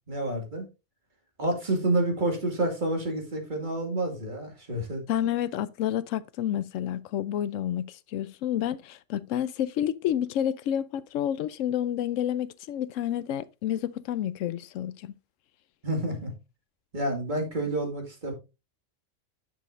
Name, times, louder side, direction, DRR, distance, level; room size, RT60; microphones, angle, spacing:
voice 1, 0.1-0.7 1.4-5.0 15.8-16.3 16.9-18.3, right 1 dB, 40° right, 2.3 m, -29 dB
voice 2, 5.1-15.1, left 10 dB, 85° left, 1.0 m, -29 dB
10.5 x 6.3 x 2.5 m
omnidirectional pair, 1.3 m